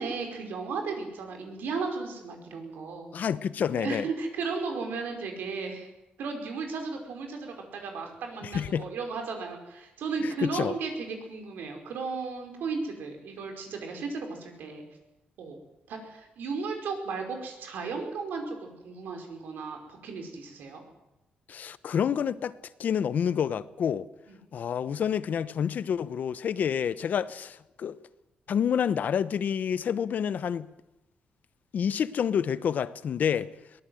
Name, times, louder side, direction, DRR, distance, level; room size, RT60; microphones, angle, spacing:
voice 1, 0.0-3.2 3.7-5.9 6.2-14.8 15.4-15.6 15.9-20.8 24.3-24.4, right 4 dB, 90° right, 5.2 m, -35 dB
voice 2, 3.1-4.0 8.4-8.9 10.2-10.7 21.5-22.5 22.8-24.1 24.5-28.0 28.5-30.7 31.7-33.5, left 8 dB, 60° left, 0.9 m, -28 dB
22.5 x 18.0 x 7.9 m
cardioid pair, 125°, 3 cm